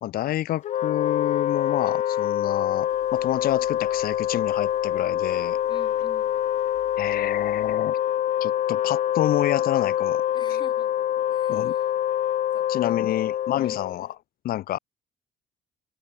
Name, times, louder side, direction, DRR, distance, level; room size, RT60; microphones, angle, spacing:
voice 1, 0.0-5.6 7.0-8.0 8.4-10.2 11.5-11.7 12.7-14.1 14.4-14.8, left 13 dB, 60° left, 0.8 m, -28 dB
Wind instrument woodwind instrument, 0.6-14.0, left 11 dB, 45° left, 0.4 m, -25 dB
sound 1, 1.3-11.4, right 7 dB, 40° right, 7.2 m, -57 dB
sound 2, 2.7-7.8, left 19 dB, 90° left, 7.8 m, -55 dB
voice 2, 5.7-6.4 10.3-11.9 12.5-13.1 13.5-13.9, left 5 dB, 25° left, 4.5 m, -47 dB
cardioid pair, 110°, 17 cm